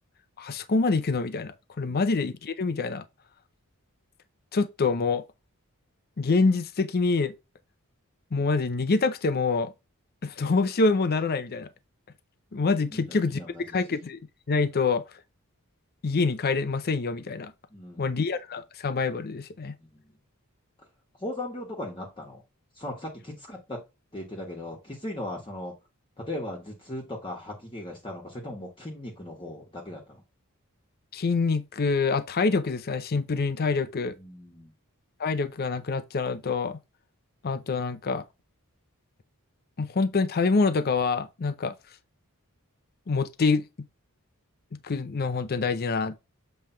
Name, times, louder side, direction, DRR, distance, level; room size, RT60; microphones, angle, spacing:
voice 1, 0.4-3.0 4.5-5.2 6.2-7.3 8.3-9.7 10.2-11.7 12.5-13.4 13.7-14.2 14.5-15.0 16.0-17.5 18.0-19.7 31.1-34.2 35.2-36.8 37.4-38.2 39.8-41.7 43.1-43.6 44.8-46.2, left 4 dB, 45° left, 0.6 m, -26 dB
voice 2, 12.9-13.8 17.7-18.2 19.8-20.1 21.2-22.4 22.7-23.8 24.1-25.7 26.2-30.2 34.2-34.7, left 1 dB, 25° left, 1.4 m, -38 dB
7.5 x 3.3 x 4.4 m
head